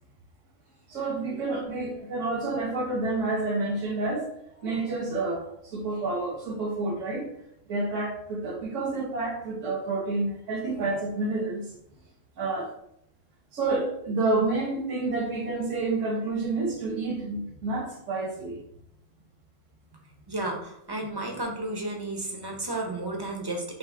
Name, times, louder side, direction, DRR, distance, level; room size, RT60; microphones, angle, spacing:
voice 1, 0.9-4.3 4.6-7.3 7.7-11.6 12.4-12.7 13.5-18.6, right 3 dB, 75° right, 1 dB, 1.3 m, -29 dB
voice 2, 20.3-23.6, right 2 dB, 30° right, 1 dB, 0.5 m, -32 dB
5.5 x 2.1 x 3.5 m, 0.77 s
omnidirectional pair, 1.3 m